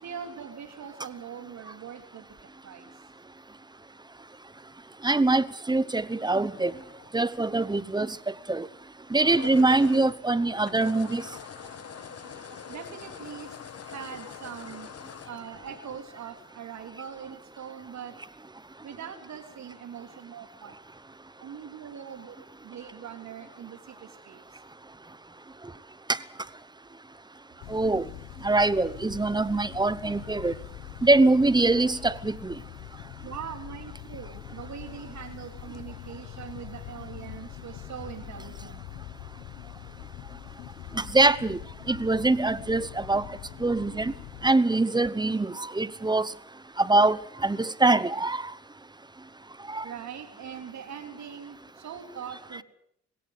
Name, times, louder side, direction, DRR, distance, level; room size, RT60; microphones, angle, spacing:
voice 1, 0.0-2.9 12.7-14.9 15.2-18.1 18.8-20.7 21.4-22.4 22.6-24.4 33.2-38.8 40.9-41.0 49.8-52.6, right 8 dB, 65° right, 3.6 m, -42 dB
voice 2, 5.0-6.7 7.1-8.2 8.5-8.7 9.1-11.2 27.7-28.0 28.4-30.5 31.0-32.5 41.0-41.6 41.9-43.2 43.6-44.1 44.4-46.3 46.8-48.4 49.7-49.8, right 2 dB, 15° right, 1.0 m, -23 dB
sound 1, 6.5-7.5 9.0-16.5, left 8 dB, 55° left, 1.4 m, -44 dB
sound 2, 27.6-44.5, left 14 dB, 90° left, 1.0 m, -43 dB
21.0 x 17.0 x 8.2 m
cardioid pair, 90°, 30 cm